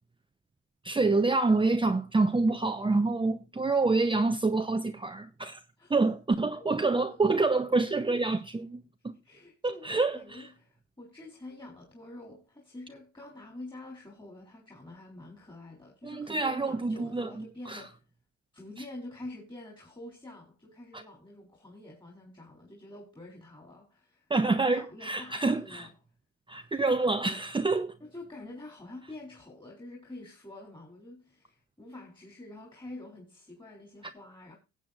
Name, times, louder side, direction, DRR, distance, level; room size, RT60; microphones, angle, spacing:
voice 1, 0.8-5.6 5.9-8.8 9.0-9.1 9.6-10.2 16.0-17.3 17.7-17.8 24.3-25.9 26.5-27.9, right 3 dB, 15° right, 0.8 m, -27 dB
voice 2, 5.8-7.2 9.2-18.0 18.5-25.9 28.0-34.6, left 2 dB, 15° left, 3.5 m, -47 dB
18.5 x 7.7 x 2.5 m
cardioid pair, 90°, 30 cm